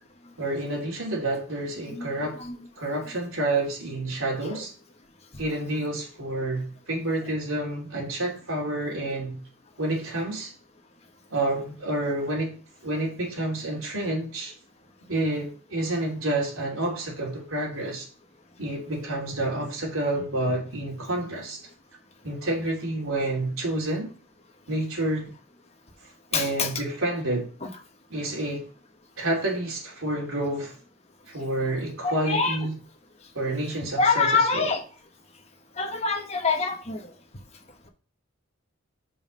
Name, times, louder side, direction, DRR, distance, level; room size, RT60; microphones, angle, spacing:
voice 1, 0.4-2.4 2.8-4.7 5.4-9.4 9.8-10.5 11.3-12.6 12.8-14.5 15.1-18.1 18.6-21.6 22.2-24.1 24.7-25.3 26.3-27.5 28.1-28.7 29.2-30.7 31.3-32.7 33.3-34.7, right 1 dB, 80° right, 3.2 m, -29 dB
voice 2, 26.3-26.7 27.6-27.7 32.0-32.6 34.0-34.8 35.8-37.0, left 4 dB, 30° left, 1.3 m, -25 dB
5.5 x 4.8 x 6.3 m
head